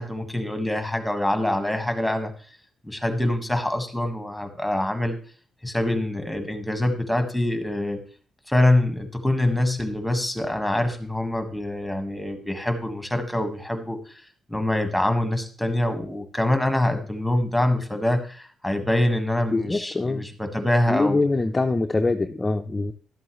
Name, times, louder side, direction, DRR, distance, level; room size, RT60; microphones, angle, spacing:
voice 1, 0.0-2.3 2.8-5.2 5.6-8.0 8.5-14.2 14.5-21.2, left 1 dB, 5° left, 7 dB, 1.6 m, -25 dB
voice 2, 19.5-20.2 20.9-22.9, left 3 dB, 20° left, 6 dB, 0.6 m, -24 dB
12.0 x 7.6 x 3.2 m, 0.42 s
cardioid pair, 90°, 0 cm